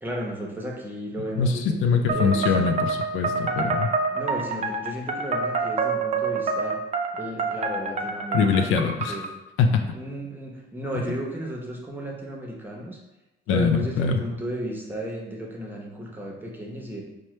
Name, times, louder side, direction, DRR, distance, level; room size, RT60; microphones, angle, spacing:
voice 1, 0.0-2.7 4.1-6.8 7.1-9.3 9.9-13.0 13.5-17.0, equal, 10° right, -2 dB, 0.8 m, -34 dB
voice 2, 1.3-3.9 8.3-9.2 9.6-9.9 13.5-14.2, left 5 dB, 85° left, 5 dB, 0.4 m, -23 dB
sound 1, 2.1-9.3, right 4 dB, 35° right, 0.5 m, -27 dB
4.5 x 2.2 x 3.1 m, 1.0 s
cardioid pair, 90°, 20 cm